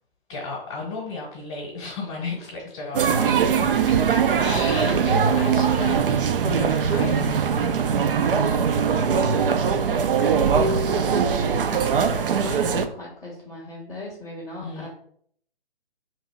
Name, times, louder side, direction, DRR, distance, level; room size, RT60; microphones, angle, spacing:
voice 1, 0.3-3.5 3.9-7.4 14.6-14.9, left 3 dB, 30° left, -2 dB, 0.9 m, -34 dB
sound 1, 2.9-12.9, right 6 dB, 65° right, 0.5 m, -21 dB
voice 2, 4.7-5.7 8.7-9.4 9.9-14.9, left 2 dB, 5° left, -13 dB, 0.4 m, -38 dB
2.9 x 2.5 x 4.4 m, 0.64 s
figure-of-eight pair, 145°, 30 cm